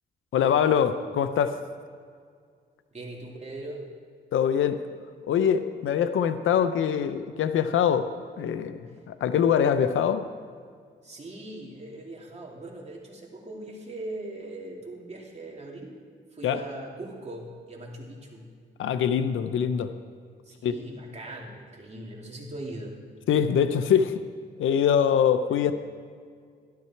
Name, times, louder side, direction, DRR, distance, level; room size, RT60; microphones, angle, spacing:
voice 1, 0.3-1.6 4.3-4.8 5.3-8.1 8.4-10.3 16.4-16.6 18.8-19.9 20.6-20.8 23.3-24.2 24.6-25.7, left 8 dB, 85° left, 10 dB, 0.6 m, -23 dB
voice 2, 2.9-3.8 11.0-16.0 16.3-18.5 20.4-23.0 25.5-25.7, right 1 dB, 35° right, -2 dB, 3.1 m, -40 dB
13.0 x 12.0 x 4.5 m, 2.1 s
cardioid pair, 65°, 20 cm